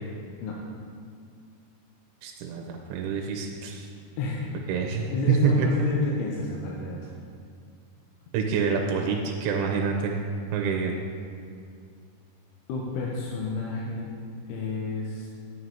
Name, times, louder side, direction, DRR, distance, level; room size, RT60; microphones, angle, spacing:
voice 1, 2.2-3.9 4.7-5.1 5.4-5.7 8.3-10.2 10.5-11.0, right 6 dB, 90° right, 1 dB, 3.1 m, -27 dB
voice 2, 5.1-7.1 12.7-14.1 14.5-15.3, left 3 dB, 85° left, -3 dB, 3.2 m, -30 dB
11.0 x 9.1 x 2.8 m, 2.2 s
omnidirectional pair, 5.5 m